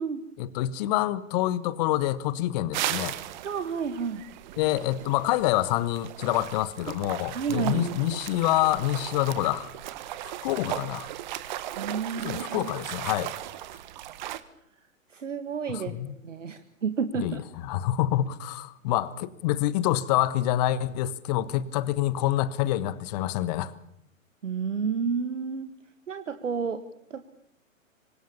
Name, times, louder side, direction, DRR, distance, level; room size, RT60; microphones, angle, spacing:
voice 1, 0.4-3.2 4.6-9.7 10.2-11.1 12.2-13.3 15.7-16.1 17.1-17.4 17.6-23.7, left 14 dB, 30° left, 17 dB, 1.4 m, -27 dB
sound 1, 2.7-14.4, right 13 dB, 35° right, 1.5 m, -37 dB
voice 2, 3.4-4.2 6.9-7.0 7.3-8.0 11.7-12.7 15.1-17.4 24.4-25.7 26.1-26.8 27.1-27.2, right 6 dB, 65° right, 9 dB, 1.9 m, -31 dB
25.5 x 25.0 x 7.1 m, 0.74 s
figure-of-eight pair, 120°, 41 cm